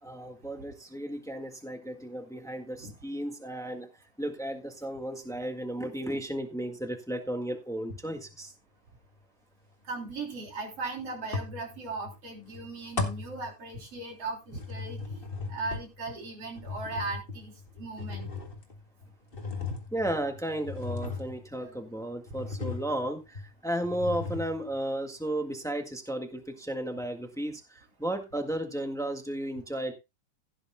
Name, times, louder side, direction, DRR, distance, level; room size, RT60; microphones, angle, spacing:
voice 1, 0.0-3.9 4.2-8.5 19.9-29.9, right 1 dB, 5° left, 4 dB, 0.4 m, -34 dB
sound 1, 7.9-8.3 11.3-12.2 12.5-14.1 14.5-21.8 22.3-23.1 23.3-23.5 23.8-24.8, left 3 dB, 20° left, 1.6 m, -38 dB
voice 2, 9.9-15.2 15.5-18.3 21.6-21.8, right 3 dB, 50° right, 1 dB, 4.3 m, -38 dB
16.5 x 10.0 x 2.2 m, 0.25 s
omnidirectional pair, 3.5 m